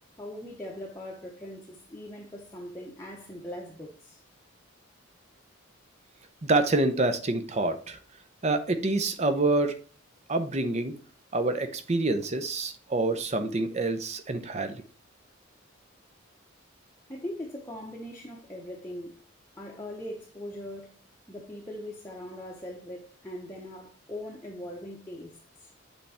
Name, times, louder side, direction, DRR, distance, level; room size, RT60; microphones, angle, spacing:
voice 1, 0.2-4.2 17.1-19.2 19.6-20.9 21.3-25.7, left 1 dB, 15° left, 0.8 m, -40 dB
voice 2, 6.4-8.0 8.4-9.7 10.3-10.9 11.3-14.8, right 2 dB, 35° right, 0.7 m, -27 dB
8.1 x 3.4 x 4.2 m
head